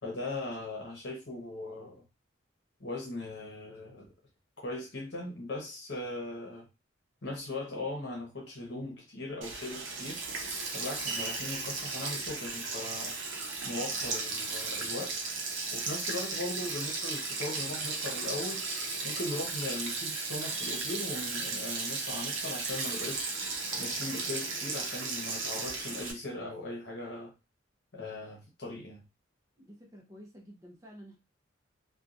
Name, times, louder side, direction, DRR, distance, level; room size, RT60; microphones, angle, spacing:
voice 1, 0.0-2.0 2.8-4.1 4.6-6.7 7.2-10.2 10.7-13.2 13.6-15.1 15.7-18.6 19.0-23.3 23.8-27.3 27.9-29.0, left 2 dB, 60° left, 0.9 m, -39 dB
Sink (filling or washing), 9.4-26.1, right 3 dB, 75° right, 0.7 m, -35 dB
voice 2, 29.6-31.2, equal, 15° right, 0.7 m, -51 dB
2.8 x 2.3 x 2.4 m
head